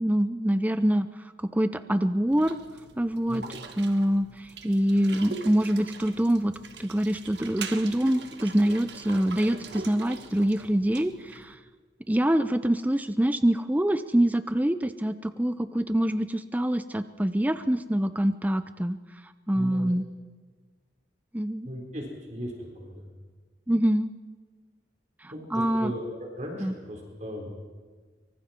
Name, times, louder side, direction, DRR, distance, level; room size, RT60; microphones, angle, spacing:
voice 1, 0.0-2.6 3.0-3.4 3.8-6.5 6.8-11.6 12.1-19.0 19.5-20.1 21.3-21.7 23.7-24.1 25.2-25.9 26.6-26.7, right 1 dB, 10° right, 11 dB, 0.5 m, -25 dB
sound 1, 2.3-11.6, right 4 dB, 70° right, 1.6 m, -42 dB
voice 2, 3.3-3.6 19.5-19.9 21.6-23.1 25.3-27.5, equal, 40° right, 0 dB, 4.2 m, -37 dB
24.5 x 24.0 x 4.4 m, 1.5 s
head